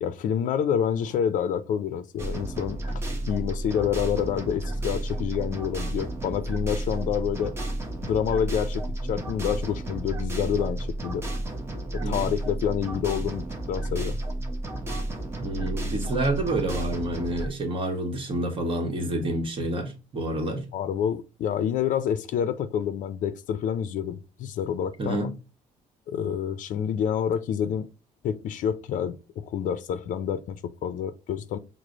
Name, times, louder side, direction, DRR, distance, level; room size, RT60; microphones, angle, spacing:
voice 1, 0.0-7.5 8.0-11.2 11.9-14.2 20.7-25.2 26.1-27.9 28.2-31.6, left 8 dB, 65° left, 0.4 m, -28 dB
sound 1, 2.2-17.5, right 1 dB, 20° right, 0.8 m, -32 dB
voice 2, 15.4-20.7 25.0-25.3, right 1 dB, 40° right, 1.1 m, -28 dB
4.9 x 2.0 x 3.7 m
cardioid pair, 110°, 14 cm